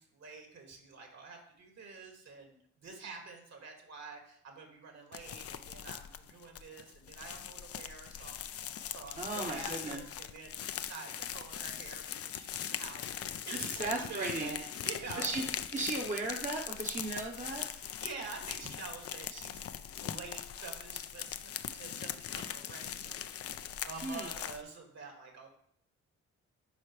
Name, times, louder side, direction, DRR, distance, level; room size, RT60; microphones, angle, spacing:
voice 1, 0.0-15.3 17.7-19.6 20.0-25.5, right 4 dB, 65° right, 1 dB, 2.2 m, -47 dB
sound 1, 5.1-24.6, left 9 dB, 50° left, 0.5 m, -41 dB
voice 2, 9.2-10.0 13.7-14.6 15.2-15.4 15.7-17.6 24.0-24.3, right 2 dB, 25° right, 0 dB, 1.0 m, -36 dB
10.5 x 4.3 x 3.3 m, 0.66 s
cardioid pair, 70°, 30 cm